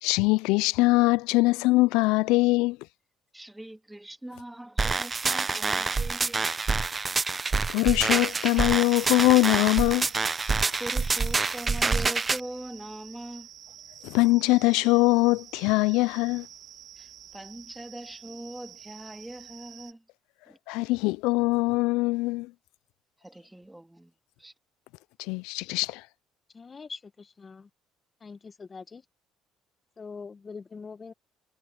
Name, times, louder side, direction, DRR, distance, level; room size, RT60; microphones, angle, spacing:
voice 1, 0.0-2.8 7.7-10.1 14.0-16.5 20.7-22.5 25.2-26.0, left 22 dB, 80° left, 0.3 m, -22 dB
voice 2, 3.3-6.5 10.5-14.1 17.0-20.0 20.5-20.6 21.4-21.6 23.2-24.1 24.4-24.5, right 1 dB, 10° right, 2.4 m, -42 dB
sound 1, 4.8-12.4, right 4 dB, 30° right, 0.8 m, -27 dB
sound 2, 8.0-19.9, right 10 dB, 60° right, 2.2 m, -49 dB
voice 3, 26.5-27.7 28.2-29.0 30.0-31.1, left 5 dB, 35° left, 1.7 m, -43 dB
hypercardioid pair, 65°, 0 cm